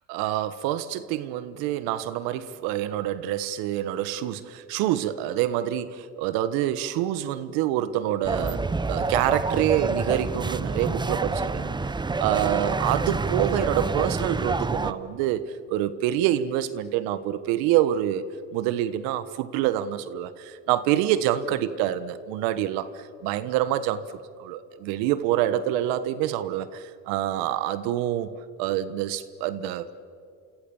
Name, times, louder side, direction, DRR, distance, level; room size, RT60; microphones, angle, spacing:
voice 1, 0.1-11.7 12.2-18.2 18.5-24.0 24.4-28.3 28.6-29.9, right 12 dB, 75° right, 1.3 m, -26 dB
sound 1, 8.2-14.9, right 3 dB, 10° right, 0.9 m, -27 dB
28.0 x 26.5 x 7.1 m
supercardioid pair, 90°, 36 cm